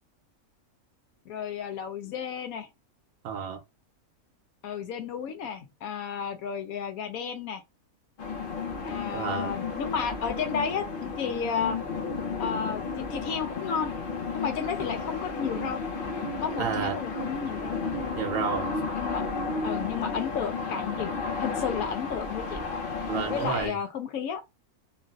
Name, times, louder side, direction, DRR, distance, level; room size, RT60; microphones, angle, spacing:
voice 1, 1.3-2.7 4.6-7.6 8.8-11.8 12.4-12.8 13.1-13.9 14.3-15.8 16.4-17.8 19.0-19.2 19.6-21.1 21.4-22.6 23.3-24.4, left 7 dB, 75° left, 1.0 m, -32 dB
voice 2, 3.2-3.6 9.1-9.6 16.6-17.0 18.1-18.7 23.1-23.8, right 7 dB, 75° right, 1.0 m, -31 dB
sound 1, 8.2-23.7, left 4 dB, 50° left, 0.6 m, -33 dB
3.0 x 2.5 x 2.4 m
omnidirectional pair, 1.6 m